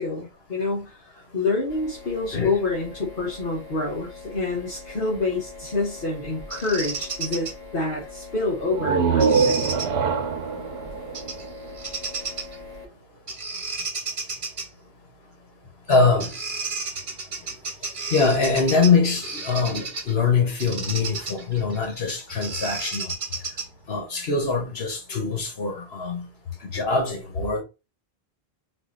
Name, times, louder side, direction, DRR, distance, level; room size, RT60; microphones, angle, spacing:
voice 1, 0.0-9.7, left 3 dB, 60° left, 1.3 m, -27 dB
sound 1, 1.7-12.9, left 3 dB, 40° left, 2.1 m, -42 dB
Bird vocalization bird call bird song, 6.5-7.5 9.2-9.9 11.1-11.5 11.8-12.6 13.3-14.7 15.9-16.0 16.2-20.1 20.6-23.9, right 4 dB, 55° right, 1.1 m, -32 dB
sound 2, 8.7-12.3, right 5 dB, 85° right, 0.9 m, -24 dB
voice 2, 15.9-16.3 18.1-23.1 23.9-26.3 26.6-27.6, left 4 dB, 80° left, 1.5 m, -23 dB
4.1 x 2.7 x 3.9 m
omnidirectional pair, 1.0 m